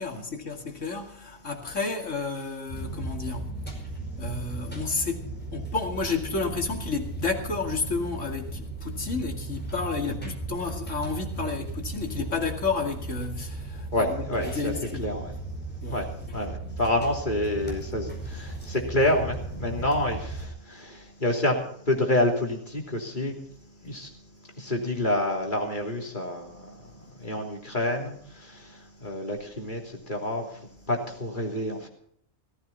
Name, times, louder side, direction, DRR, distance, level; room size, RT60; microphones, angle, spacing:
voice 1, 0.0-3.5 4.2-5.3 5.5-15.1 15.8-16.1, left 4 dB, 65° left, 2.8 m, -31 dB
sound 1, 2.7-20.5, right 2 dB, 5° left, 4.8 m, -36 dB
voice 2, 13.9-14.7 15.0-15.4 15.9-16.1 16.3-23.4 23.8-24.1 24.4-31.9, left 1 dB, 35° left, 3.2 m, -28 dB
17.5 x 15.0 x 4.2 m
omnidirectional pair, 1.4 m